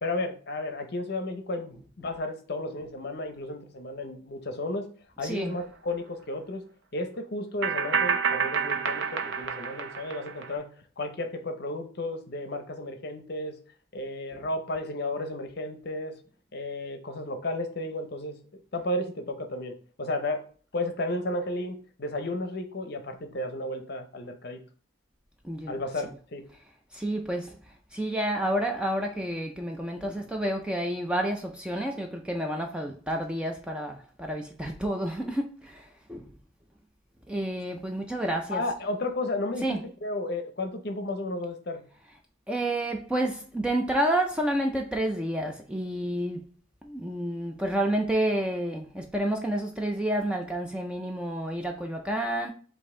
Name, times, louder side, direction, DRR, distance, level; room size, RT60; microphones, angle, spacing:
voice 1, 0.0-4.9 5.2-6.6 6.9-10.7 11.0-13.6 13.9-16.2 16.5-18.4 18.7-20.4 20.7-24.6 25.7-26.4 38.5-39.6 40.0-41.8, left 2 dB, 50° left, 0.6 m, -33 dB
voice 2, 5.2-5.6 14.3-14.4 25.4-26.1 26.9-27.6 27.9-36.3 37.3-38.6 39.6-39.9 42.5-46.5 46.8-52.5, right 1 dB, 5° right, 0.3 m, -30 dB
sound 1, 5.6-5.7 7.6-10.5, right 6 dB, 60° right, 0.5 m, -28 dB
5.2 x 2.6 x 3.7 m
head